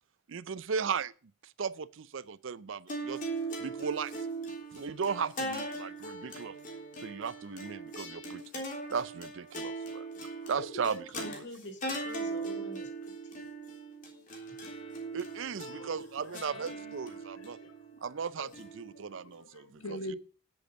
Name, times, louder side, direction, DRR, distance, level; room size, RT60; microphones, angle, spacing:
voice 1, 0.3-1.1 1.6-3.2 3.6-4.1 4.7-6.6 7.0-8.4 8.9-10.1 10.5-11.4 15.1-17.6 18.0-20.0, right 6 dB, 60° right, 0.5 m, -36 dB
sound 1, 2.9-19.3, right 2 dB, 40° left, 3.3 m, -40 dB
voice 2, 10.6-13.5, equal, 55° left, 2.5 m, -45 dB
voice 3, 15.7-16.9 17.2-18.0 18.4-18.5 18.9-20.2, left 1 dB, 80° left, 1.3 m, -45 dB
10.5 x 7.9 x 6.4 m
head